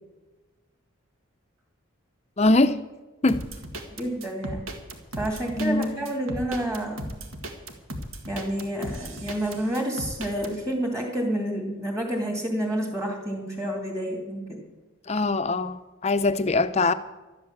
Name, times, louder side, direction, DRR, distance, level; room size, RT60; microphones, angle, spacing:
voice 1, 2.4-2.8 3.2-3.4 5.6-6.1 15.1-16.9, left 2 dB, 30° left, 0.6 m, -22 dB
sound 1, 3.3-10.5, right 1 dB, 80° right, 1.9 m, -36 dB
voice 2, 3.9-4.6 5.2-7.0 8.3-14.6, right 1 dB, 15° right, 2.4 m, -29 dB
12.5 x 11.0 x 7.1 m
head